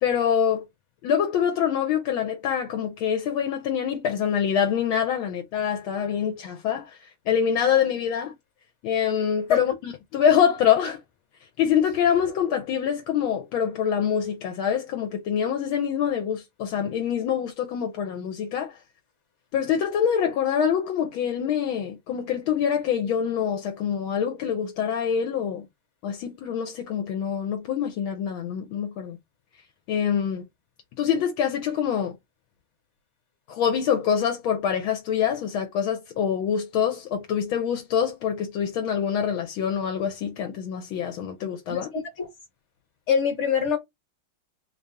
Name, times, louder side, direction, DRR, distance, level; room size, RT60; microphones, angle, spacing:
voice 1, 0.0-0.6 1.0-8.3 8.8-11.0 11.6-18.8 19.5-25.7 26.0-29.2 29.9-30.4 31.0-32.2 33.5-41.9, left 8 dB, 75° left, 1.4 m, -25 dB
voice 2, 41.7-42.3 43.1-43.8, left 7 dB, 40° left, 1.3 m, -24 dB
3.4 x 2.7 x 3.4 m
omnidirectional pair, 2.3 m